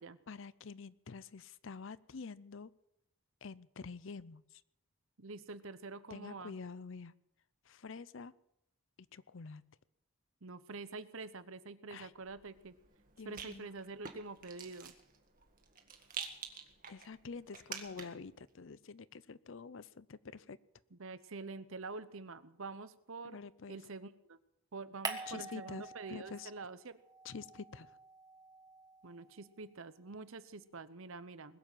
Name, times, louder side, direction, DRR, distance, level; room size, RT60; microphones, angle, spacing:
voice 1, 0.3-2.7 3.4-4.6 6.1-7.1 7.7-8.3 9.1-9.6 11.9-12.1 13.2-13.7 16.9-20.6 23.2-23.8 25.3-26.5 27.2-28.0, left 5 dB, 60° left, 19 dB, 0.5 m, -47 dB
voice 2, 5.2-6.6 10.4-12.7 13.2-14.9 20.9-23.4 23.7-24.4 24.7-27.0 29.0-31.6, right 3 dB, 65° right, 14 dB, 0.9 m, -46 dB
Rattle, 12.2-18.3, right 6 dB, 40° right, 1.8 m, -49 dB
sound 1, 25.0-26.7 27.0-29.5, right 4 dB, 15° right, 1.4 m, -46 dB
20.5 x 7.5 x 9.1 m, 0.80 s
head